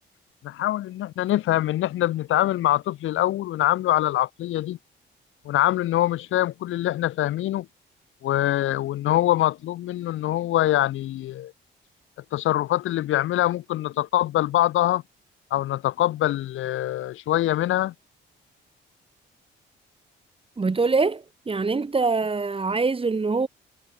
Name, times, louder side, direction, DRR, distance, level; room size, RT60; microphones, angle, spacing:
voice 1, 0.4-4.8 5.5-7.7 8.2-11.5 12.3-15.0 15.5-17.9, left 14 dB, 85° left, 5.8 m, -24 dB
voice 2, 20.6-23.5, right 4 dB, 25° right, 4.8 m, -24 dB
cardioid pair, 90°, 20 cm